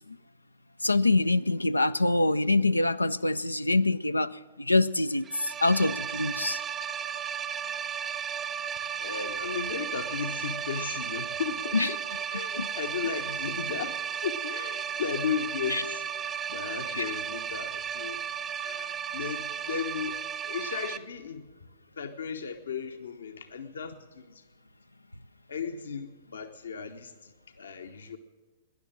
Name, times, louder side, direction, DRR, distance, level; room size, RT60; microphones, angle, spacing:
voice 1, 0.8-6.6 11.7-11.9 12.6-12.7 15.7-15.8 16.9-17.1, left 2 dB, 85° left, 12 dB, 0.4 m, -25 dB
sound 1, 5.2-21.0, right 8 dB, 20° right, 0.6 m, -34 dB
voice 2, 9.0-12.0 12.3-18.2 18.6-21.5 22.0-24.4 25.5-28.2, left 6 dB, 70° left, 6 dB, 0.9 m, -36 dB
18.0 x 10.5 x 7.5 m, 1.3 s
figure-of-eight pair, 105°, 0 cm